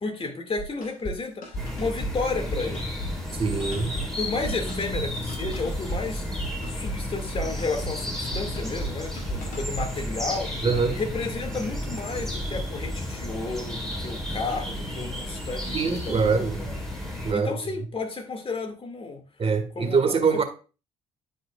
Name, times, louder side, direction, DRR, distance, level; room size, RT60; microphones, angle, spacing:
voice 1, 0.0-2.9 4.2-6.2 6.7-10.7 10.9-16.7 17.3-19.2 19.8-20.4, left 3 dB, 35° left, 2.2 m, -32 dB
sound 1, 0.6-1.2 1.4-2.1 2.4-3.1 3.5-4.1 4.4-5.0 5.3-6.0 6.4-7.0 7.3-7.9 8.2-8.9 9.2-9.9, right 1 dB, 55° left, 2.4 m, -34 dB
sound 2, 1.5-17.3, left 1 dB, 5° left, 3.7 m, -32 dB
voice 2, 3.4-4.0 10.6-11.0 15.7-16.7 17.2-17.6 19.4-20.4, right 5 dB, 35° right, 1.7 m, -24 dB
9.9 x 5.1 x 2.4 m
hypercardioid pair, 50°, 16 cm